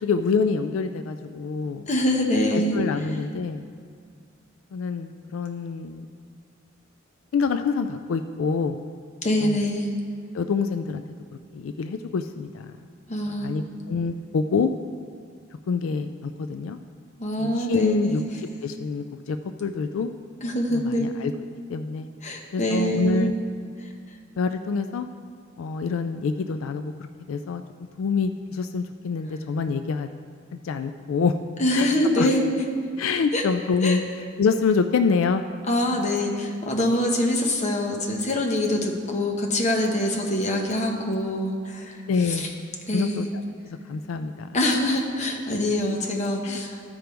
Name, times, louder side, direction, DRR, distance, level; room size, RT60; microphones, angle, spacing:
voice 1, 0.0-1.8 2.5-3.7 4.7-6.0 7.3-8.8 9.4-9.7 10.3-11.0 11.5-12.7 13.4-14.7 15.7-16.8 17.4-20.1 20.7-21.3 21.7-22.1 22.5-23.4 24.4-25.1 25.6-26.9 27.3-27.6 28.0-30.1 30.5-31.4 31.7-31.9 32.2-32.3 33.0-34.0 34.4-35.4 42.1-42.5 42.9-44.5 46.4-46.6, left 5 dB, 85° left, 9 dB, 0.4 m, -26 dB
voice 2, 1.9-2.8 9.2-9.9 13.1-13.6 17.2-18.2 20.4-21.1 22.2-23.3 31.6-32.4 33.3-33.4 33.8-34.0 35.7-42.0 42.3-42.5 42.9-43.3 44.5-46.9, left 1 dB, 35° left, 1 dB, 1.1 m, -24 dB
14.0 x 5.1 x 4.5 m, 2.1 s
head